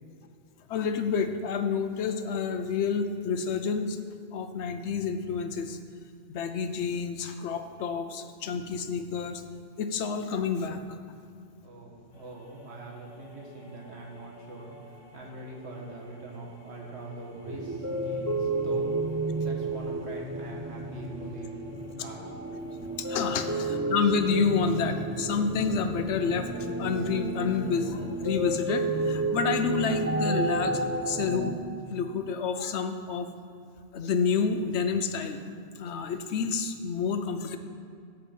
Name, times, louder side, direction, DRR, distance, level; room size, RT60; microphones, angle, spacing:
voice 1, 0.7-4.0 4.3-5.8 6.3-9.4 9.8-10.8 23.0-26.5 26.8-31.6 31.9-33.3 33.9-35.4 35.8-37.6, left 6 dB, 80° left, 8 dB, 1.0 m, -29 dB
voice 2, 11.6-22.3, right 2 dB, 75° right, -1 dB, 1.7 m, -43 dB
sound 1, 12.1-28.2, left 1 dB, 30° left, 1.5 m, -52 dB
sound 2, 17.5-31.6, right 2 dB, 20° right, 0.5 m, -31 dB
11.0 x 4.5 x 7.3 m, 2.4 s
omnidirectional pair, 1.1 m